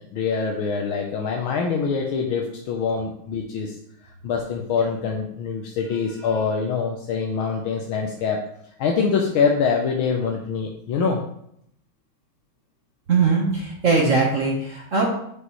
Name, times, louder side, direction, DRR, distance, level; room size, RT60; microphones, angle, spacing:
voice 1, 0.1-3.8 4.2-8.4 8.8-11.2, left 5 dB, 80° left, 1 dB, 1.5 m, -24 dB
voice 2, 13.1-15.0, right 4 dB, 45° right, -2 dB, 1.3 m, -20 dB
7.5 x 6.4 x 3.1 m, 0.72 s
omnidirectional pair, 2.3 m